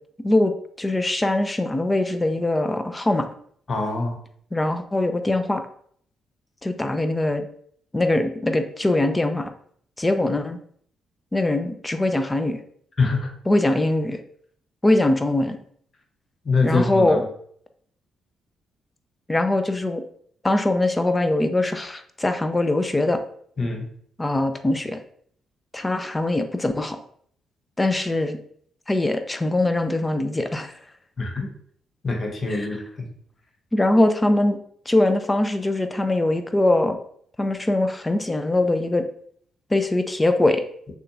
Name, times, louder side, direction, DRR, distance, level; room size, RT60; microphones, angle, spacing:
voice 1, 0.8-3.3 4.5-5.6 6.6-7.5 7.9-9.5 10.0-10.6 11.3-12.6 13.5-14.2 14.8-15.6 16.6-17.3 19.3-20.0 20.4-23.2 24.2-25.0 25.7-27.0 27.8-28.4 28.9-30.7 32.5-32.7 33.7-34.6 34.9-37.0 37.4-39.0 39.7-40.6, left 2 dB, 20° left, 8 dB, 0.6 m, -22 dB
voice 2, 3.7-4.2 13.0-13.3 16.4-17.2 23.6-23.9 31.2-31.5 32.0-33.1, left 3 dB, 45° left, 2 dB, 1.1 m, -24 dB
6.4 x 2.5 x 2.6 m, 0.62 s
hypercardioid pair, 40°, 0 cm